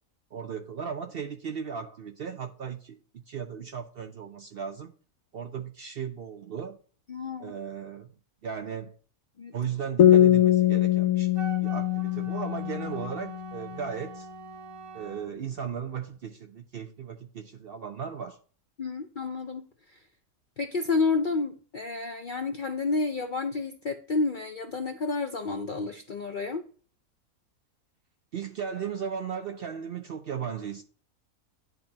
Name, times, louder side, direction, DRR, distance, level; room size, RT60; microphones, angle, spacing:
voice 1, 0.3-4.9 5.3-6.8 7.4-8.1 8.4-8.9 9.5-11.3 11.6-14.3 14.9-18.4 28.3-30.8, right 7 dB, 60° right, 0.6 m, -36 dB
voice 2, 7.1-7.5 9.4-9.5 18.8-20.0 20.6-26.6, left 4 dB, 60° left, 0.5 m, -30 dB
sound 1, 10.0-13.5, left 12 dB, 80° left, 1.1 m, -22 dB
Wind instrument woodwind instrument, 11.3-15.3, right 7 dB, 85° right, 1.4 m, -43 dB
10.5 x 3.7 x 2.8 m
omnidirectional pair, 1.5 m